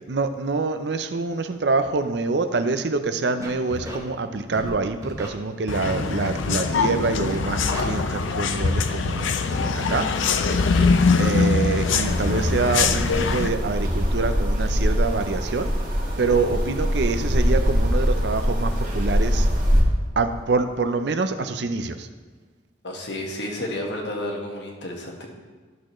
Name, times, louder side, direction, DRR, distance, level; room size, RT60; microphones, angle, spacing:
voice 1, 0.1-10.7 11.2-15.7 16.2-19.5 20.2-22.1, right 3 dB, 60° right, 9 dB, 0.5 m, -26 dB
Scratching (performance technique), 3.4-4.0 4.5-4.7 5.0-5.3 5.9-6.3 6.5-6.9 7.2-7.3 7.7-7.8, right 1 dB, 15° right, 1.1 m, -33 dB
sound 1, 5.7-13.5, left 4 dB, 90° left, 0.5 m, -22 dB
voice 2, 10.5-10.9 22.8-25.3, left 1 dB, 65° left, 0 dB, 1.5 m, -32 dB
sound 2, 12.0-19.8, equal, 45° right, 1.7 m, -23 dB
12.0 x 6.4 x 3.1 m, 1.4 s
head